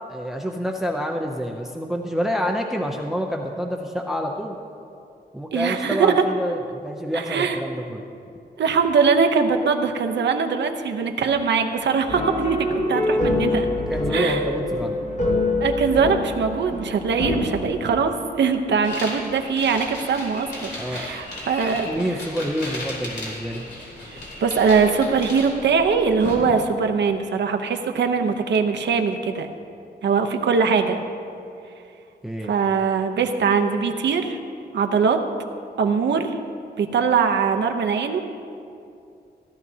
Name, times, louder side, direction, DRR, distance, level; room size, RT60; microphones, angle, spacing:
voice 1, 0.0-4.6 5.3-8.0 13.9-15.0 20.7-21.1 21.4-21.5 21.9-23.6 32.2-32.5, equal, ahead, 1 dB, 0.5 m, -28 dB
voice 2, 5.5-6.2 7.1-7.6 8.6-13.7 14.1-14.4 15.6-22.2 24.1-29.5 30.0-31.0 32.4-34.4 34.7-35.2 35.8-36.3 36.8-38.2, right 5 dB, 85° right, 5 dB, 0.8 m, -22 dB
sound 1, 12.1-17.6, left 2 dB, 45° left, 1.2 m, -25 dB
sound 2, 18.8-26.4, left 1 dB, 65° left, 3.2 m, -35 dB
16.5 x 12.0 x 2.8 m, 2.5 s
wide cardioid pair, 170°, 18 cm